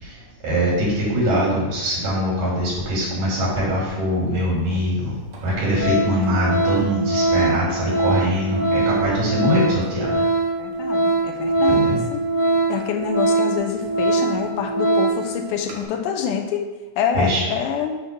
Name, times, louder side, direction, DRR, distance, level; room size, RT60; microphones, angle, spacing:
voice 1, 0.0-10.2 11.6-12.0 17.2-17.4, equal, 80° right, -5 dB, 4.0 m, -22 dB
Organ, 4.7-4.8 5.3-5.5 5.8-15.3 15.7-15.8, right 2 dB, 60° right, 1.5 m, -22 dB
voice 2, 10.6-12.2 12.7-16.7 17.0-18.0, left 7 dB, 85° left, 3 dB, 2.2 m, -26 dB
8.0 x 2.9 x 5.8 m, 1.2 s
omnidirectional pair, 3.7 m